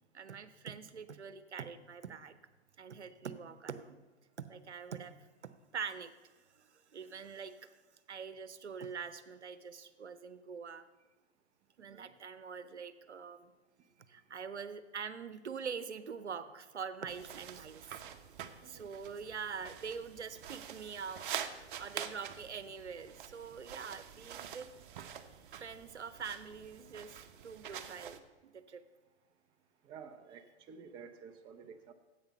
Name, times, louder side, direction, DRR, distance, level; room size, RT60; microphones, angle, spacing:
voice 1, 0.1-2.4 2.8-4.0 4.4-5.1 5.7-7.7 8.1-10.9 11.8-13.5 14.1-17.9 18.6-21.3 21.8-24.7 25.5-28.8, right 6 dB, 80° right, 13 dB, 0.8 m, -44 dB
sound 1, 17.1-28.2, right 9 dB, 50° right, 0.8 m, -46 dB
voice 2, 29.8-31.9, right 6 dB, 15° right, 7 dB, 0.4 m, -51 dB
10.5 x 8.0 x 5.5 m, 1.2 s
figure-of-eight pair, 110°, 33 cm